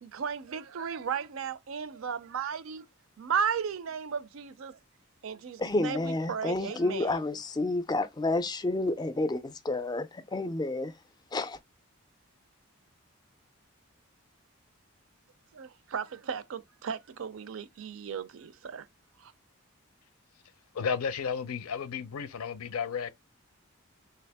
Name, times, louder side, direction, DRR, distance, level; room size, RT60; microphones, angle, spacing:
voice 1, 0.0-2.8 3.2-4.8 5.2-7.2 15.5-18.9 19.2-19.3, right 7 dB, 65° right, 0.4 m, -35 dB
voice 2, 5.6-10.9 11.3-11.6, left 2 dB, 20° left, 0.4 m, -30 dB
voice 3, 20.7-23.1, left 6 dB, 85° left, 0.6 m, -33 dB
3.4 x 2.8 x 3.3 m
head